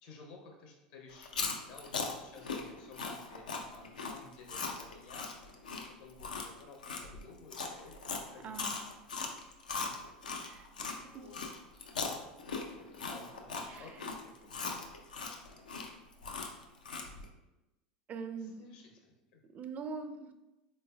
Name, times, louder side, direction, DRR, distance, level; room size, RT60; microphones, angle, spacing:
voice 1, 0.0-5.3 6.0-8.8 9.8-10.0 10.6-11.4 12.7-14.6 18.4-19.4, left 3 dB, 65° left, 1 dB, 0.9 m, -54 dB
Chewing mastication, 1.1-11.0 11.3-17.3, left 4 dB, 90° left, 0.4 m, -39 dB
voice 2, 8.4-8.8 10.3-10.7 11.1-11.3 13.6-13.9 15.5-15.7 18.1-18.6 19.5-20.3, right 5 dB, 35° right, 8 dB, 0.4 m, -43 dB
3.8 x 3.2 x 2.3 m, 1.0 s
hypercardioid pair, 85°, 4 cm